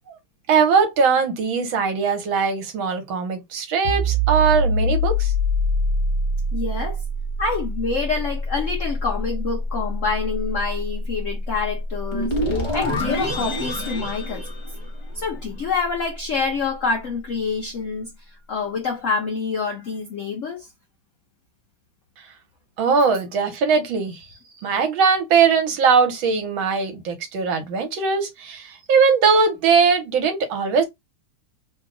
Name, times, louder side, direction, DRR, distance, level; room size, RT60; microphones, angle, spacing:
voice 1, 0.5-5.3 22.8-24.2 24.6-30.8, right 5 dB, 75° right, 1.7 m, -20 dB
sound 1, 3.8-15.3, equal, 55° right, 1.5 m, -25 dB
voice 2, 6.5-7.0 7.4-14.4 15.1-18.1 18.5-20.7, left 4 dB, 80° left, 0.7 m, -27 dB
sound 2, 12.1-15.4, left 1 dB, 25° left, 0.7 m, -27 dB
3.6 x 2.3 x 3.7 m
omnidirectional pair, 2.2 m